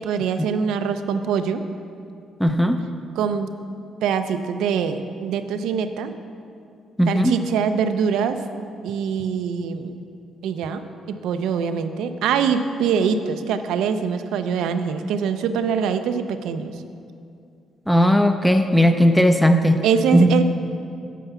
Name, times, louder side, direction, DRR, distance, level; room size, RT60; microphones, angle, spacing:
voice 1, 0.0-1.6 3.2-3.5 4.0-6.1 7.1-8.4 8.8-10.0 10.4-16.8 19.8-20.4, right 7 dB, 85° right, 9 dB, 0.5 m, -23 dB
voice 2, 2.4-2.8 7.0-7.4 17.9-19.8 20.1-20.3, equal, 5° left, 6 dB, 0.5 m, -17 dB
9.2 x 4.6 x 6.8 m, 2.4 s
cardioid pair, 90°, 0 cm